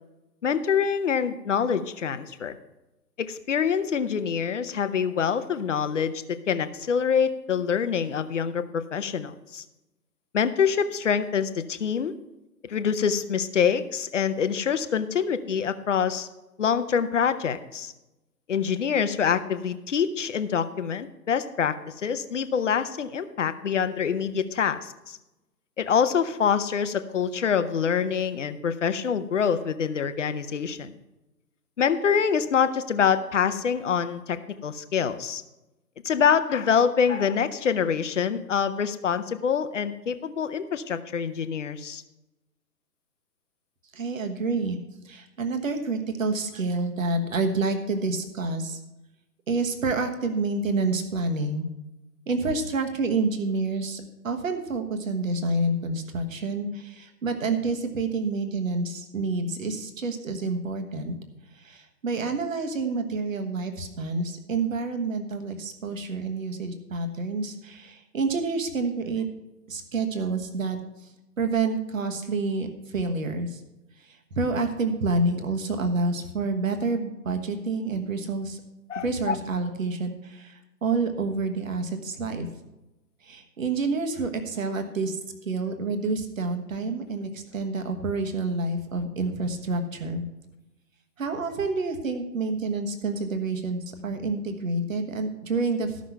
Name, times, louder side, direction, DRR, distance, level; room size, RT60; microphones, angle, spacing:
voice 1, 0.4-2.6 3.2-9.6 10.3-12.1 12.7-16.3 16.6-17.9 18.5-25.2 25.8-30.9 31.8-35.4 36.0-42.0 78.9-79.4, left 7 dB, 45° left, 11 dB, 0.8 m, -25 dB
voice 2, 43.9-44.8 45.0-48.8 49.5-51.7 52.3-61.2 61.5-69.3 69.7-71.1 71.4-73.6 74.0-78.6 79.0-82.5 83.2-90.2 91.2-96.0, right 3 dB, 50° right, 7 dB, 1.4 m, -28 dB
13.5 x 6.2 x 5.6 m, 0.99 s
figure-of-eight pair, 135°, 50 cm